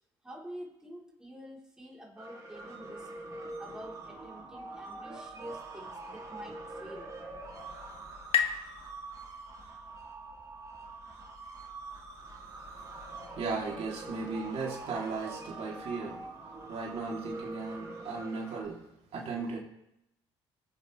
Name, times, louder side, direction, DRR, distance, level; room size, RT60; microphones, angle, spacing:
voice 1, 0.2-3.1 3.6-7.1, equal, 5° right, -3 dB, 3.7 m, -47 dB
sound 1, 2.2-18.6, right 2 dB, 30° right, 3.8 m, -44 dB
sound 2, 6.9-10.2, left 9 dB, 55° left, 1.5 m, -36 dB
voice 2, 13.4-16.2 16.7-18.8 19.1-19.6, right 4 dB, 60° right, -2 dB, 3.1 m, -36 dB
21.0 x 8.4 x 3.3 m, 0.85 s
supercardioid pair, 70°, 12 cm